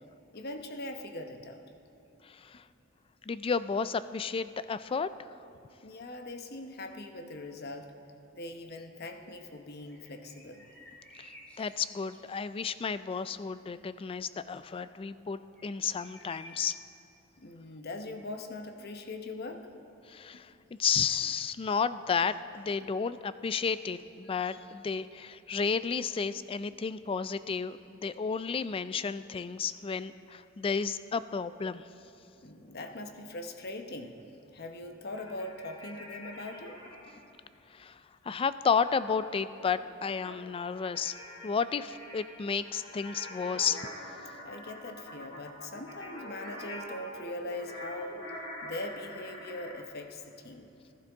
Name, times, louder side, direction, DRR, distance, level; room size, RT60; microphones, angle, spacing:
voice 1, 0.3-1.6 5.8-7.9 8.3-10.7 17.4-19.7 32.4-34.2 34.5-36.8 44.4-48.2 48.6-50.7, left 2 dB, 55° left, 6 dB, 0.9 m, -41 dB
voice 2, 2.2-2.6 3.3-5.1 11.2-11.3 11.6-16.8 20.1-20.5 20.8-31.8 37.7-38.0 38.2-41.1 41.4-43.9, left 6 dB, 30° left, 14 dB, 0.3 m, -32 dB
sound 1, 9.8-16.7, equal, 5° left, 2.5 m, -55 dB
sound 2, 35.1-37.2 38.8-49.9, left 1 dB, 75° left, 2.0 m, -45 dB
19.0 x 12.0 x 3.5 m, 2.8 s
head